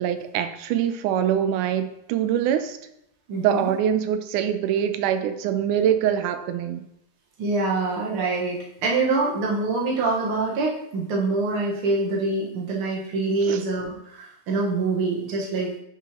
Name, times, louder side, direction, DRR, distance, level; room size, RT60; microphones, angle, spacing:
voice 1, 0.0-2.8 3.4-6.8 13.5-13.6, right 9 dB, 90° right, 9 dB, 2.2 m, -24 dB
voice 2, 3.3-3.7 7.4-15.7, right 3 dB, 50° right, -2 dB, 2.1 m, -25 dB
10.0 x 5.6 x 3.0 m, 0.79 s
omnidirectional pair, 3.5 m